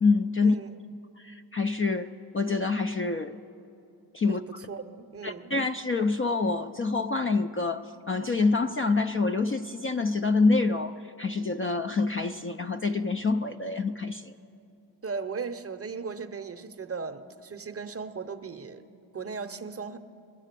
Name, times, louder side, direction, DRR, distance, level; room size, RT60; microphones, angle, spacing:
voice 1, 0.0-0.6 1.2-3.4 4.1-4.4 5.2-14.3, left 3 dB, 30° left, 8 dB, 0.4 m, -26 dB
voice 2, 4.3-5.5 15.0-18.8 19.1-20.0, right 5 dB, 30° right, 9 dB, 0.7 m, -37 dB
21.5 x 7.4 x 6.7 m, 2.8 s
cardioid pair, 65°, 47 cm